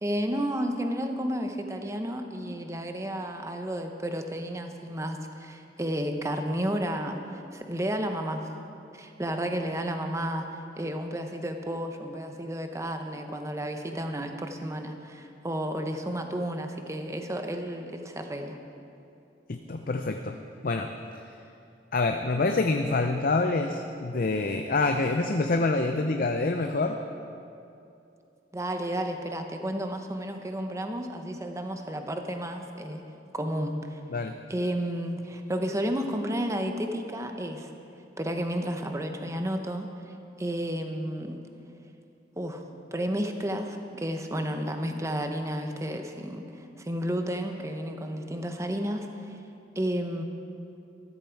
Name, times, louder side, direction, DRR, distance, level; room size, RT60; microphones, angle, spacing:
voice 1, 0.0-8.5 8.9-18.6 28.5-33.0 33.3-34.0 34.5-37.7 38.2-39.9 40.4-41.4 42.4-49.4 49.7-50.2, equal, 15° right, 5 dB, 0.9 m, -32 dB
voice 2, 19.5-20.4 20.6-20.9 21.9-27.0 34.1-34.4, left 3 dB, 50° left, 5 dB, 0.6 m, -26 dB
14.0 x 13.0 x 4.6 m, 2.7 s
head